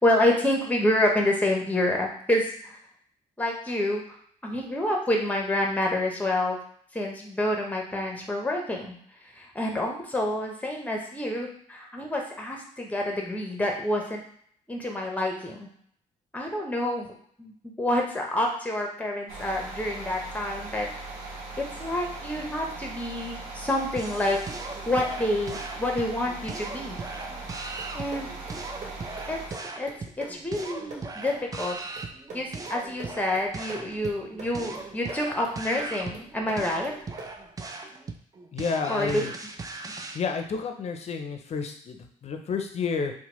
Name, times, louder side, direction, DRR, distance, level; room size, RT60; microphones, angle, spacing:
voice 1, 0.0-2.8 3.4-4.0 4.4-6.6 6.9-9.0 9.4-14.2 14.7-15.7 16.3-17.1 17.4-20.9 21.6-24.4 24.9-27.0 27.9-28.3 29.3-29.4 29.8-29.9 30.2-31.8 32.3-36.9 38.9-39.3, left 1 dB, 10° left, 1 dB, 0.8 m, -28 dB
sound 1, 19.3-29.5, right 3 dB, 85° right, 0.7 m, -39 dB
sound 2, 24.0-40.2, right 3 dB, 25° right, 0.4 m, -39 dB
sound 3, 27.8-37.5, right 3 dB, 55° right, 0.9 m, -46 dB
voice 2, 38.5-39.3 40.1-43.1, left 5 dB, 50° left, 5 dB, 0.5 m, -30 dB
2.8 x 2.2 x 3.0 m, 0.63 s
supercardioid pair, 65°, 15 cm